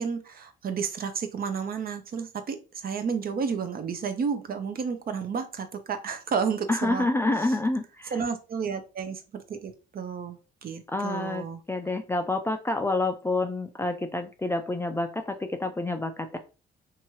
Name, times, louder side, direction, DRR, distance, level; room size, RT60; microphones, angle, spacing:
voice 1, 0.0-7.1 8.1-11.6, right 6 dB, 50° right, 0.6 m, -31 dB
voice 2, 6.7-8.2 10.9-16.4, left 2 dB, 10° left, 0.3 m, -28 dB
2.8 x 2.3 x 3.0 m
cardioid pair, 90°, 20 cm